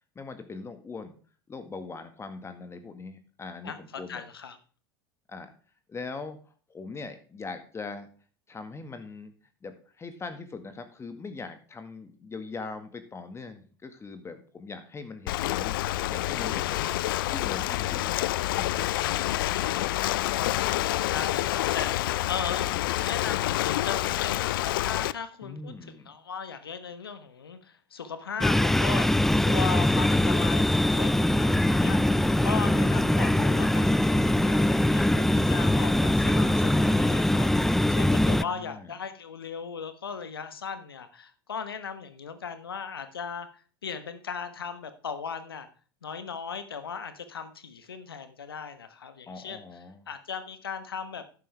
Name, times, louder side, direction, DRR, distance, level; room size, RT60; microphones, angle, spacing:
voice 1, 0.1-1.2 1.5-4.2 5.3-5.5 5.9-6.4 6.7-8.1 8.5-9.3 9.6-15.8 16.1-16.8 17.3-18.2 18.5-18.8 25.4-26.1 33.3-33.8 38.4-38.9 49.3-50.0, left 4 dB, 20° left, 9 dB, 1.7 m, -41 dB
voice 2, 4.1-4.6 20.3-22.7 23.0-25.7 26.0-45.7 46.0-49.6 50.1-51.2, left 6 dB, 85° left, 11 dB, 1.2 m, -37 dB
Ocean, 15.3-25.1, left 15 dB, 70° left, 0.4 m, -28 dB
sound 1, 28.4-38.4, left 1 dB, 5° left, 0.4 m, -22 dB
11.0 x 9.6 x 3.4 m, 0.40 s
hypercardioid pair, 85°, 12 cm